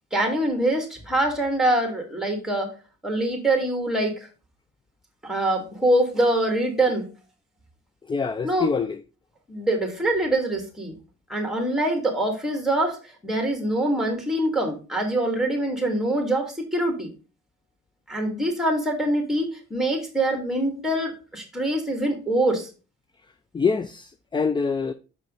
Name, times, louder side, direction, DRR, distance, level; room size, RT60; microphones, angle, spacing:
voice 1, 0.1-2.7 3.0-4.3 5.2-7.1 8.4-8.7 9.5-11.0 11.3-17.1 18.1-22.7, right 1 dB, ahead, 2.1 m, -24 dB
voice 2, 8.1-9.0 23.5-24.9, left 5 dB, 15° left, 0.3 m, -25 dB
5.3 x 5.3 x 3.8 m
cardioid pair, 90°, 30 cm